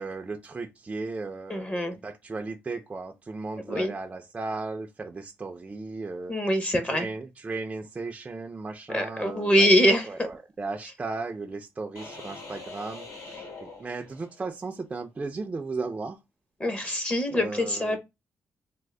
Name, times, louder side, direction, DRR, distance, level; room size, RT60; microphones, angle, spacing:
voice 1, 0.0-6.3 6.9-13.1 13.3-16.2 17.3-18.0, right 3 dB, 25° right, 0.4 m, -36 dB
voice 2, 1.5-1.9 3.7-3.9 6.3-7.1 8.9-10.1 16.6-18.0, equal, 25° left, 0.7 m, -24 dB
sound 1, 11.9-14.6, left 3 dB, 80° left, 1.6 m, -43 dB
3.5 x 2.0 x 3.2 m
cardioid pair, 120°, 6 cm